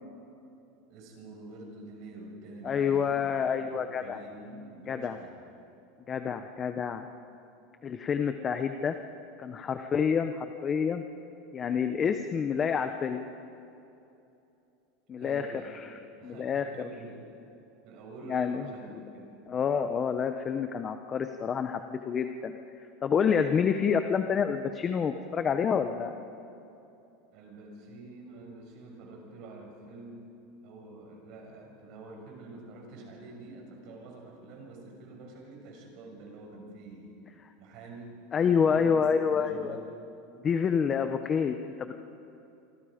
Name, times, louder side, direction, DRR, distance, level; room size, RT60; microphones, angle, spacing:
voice 1, 0.9-5.4 15.2-15.7 16.2-17.3 17.8-19.4 27.3-30.3 30.6-37.2 37.6-38.2 38.5-39.9, right 2 dB, 45° right, 1 dB, 6.2 m, -47 dB
voice 2, 2.6-4.2 4.9-5.2 6.1-7.1 7.8-8.9 9.4-11.0 11.5-13.2 15.1-15.5 15.8-16.9 18.3-18.6 19.5-22.6 23.0-26.2 38.3-39.8 40.4-41.9, left 6 dB, 20° left, 8 dB, 0.8 m, -28 dB
28.5 x 24.0 x 5.1 m, 2.8 s
supercardioid pair, 165°, 0 cm